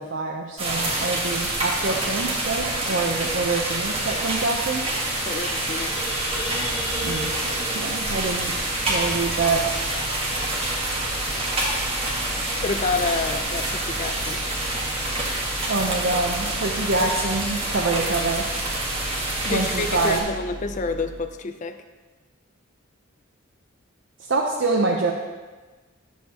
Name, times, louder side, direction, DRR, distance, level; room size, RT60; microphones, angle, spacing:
voice 1, 0.0-4.9 7.0-7.3 7.7-8.5 8.9-9.7 10.8-11.1 15.7-18.5 19.5-20.3 24.3-25.1, right 3 dB, 65° right, -1 dB, 0.7 m, -26 dB
sound 1, 0.6-20.2, right 1 dB, 30° right, 1.7 m, -27 dB
Engine starting, 4.6-21.3, left 1 dB, ahead, 2.3 m, -39 dB
voice 2, 5.3-6.1 12.6-14.4 19.4-21.8, left 3 dB, 35° left, 9 dB, 0.4 m, -28 dB
sound 2, 5.4-9.4, equal, 80° left, 2.1 m, -36 dB
10.0 x 7.5 x 2.9 m, 1.3 s
head